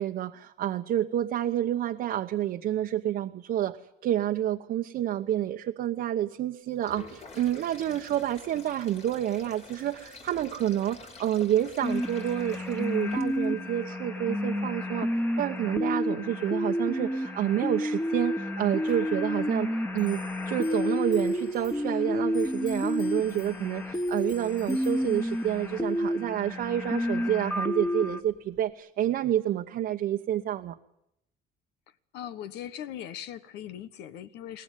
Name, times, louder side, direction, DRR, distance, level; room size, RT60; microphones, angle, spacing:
voice 1, 0.0-3.8 4.0-15.1 15.4-20.2 20.5-30.8, right 11 dB, 65° right, 1.0 m, -29 dB
Sink (filling or washing), 6.7-13.6, left 3 dB, 40° left, 3.3 m, -48 dB
sound 1, 11.8-28.2, left 1 dB, 10° left, 1.6 m, -30 dB
Clock, 18.8-28.7, left 8 dB, 60° left, 4.0 m, -53 dB
voice 2, 32.1-34.6, left 10 dB, 85° left, 1.4 m, -40 dB
22.5 x 18.0 x 9.3 m
cardioid pair, 110°, 17 cm